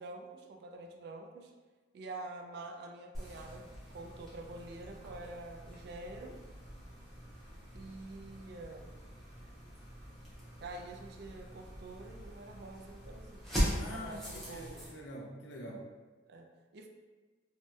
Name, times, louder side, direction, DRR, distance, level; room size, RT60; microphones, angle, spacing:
voice 1, 0.0-1.5 1.9-6.4 7.7-8.9 10.6-13.4 13.9-14.8 16.3-16.5 16.7-16.9, right 2 dB, 55° right, 3 dB, 0.3 m, -47 dB
sound 1, 3.1-14.9, equal, ahead, 0.7 m, -41 dB
voice 2, 13.7-15.9, left 1 dB, 65° left, -1 dB, 0.5 m, -45 dB
3.0 x 2.7 x 2.2 m, 1.3 s
head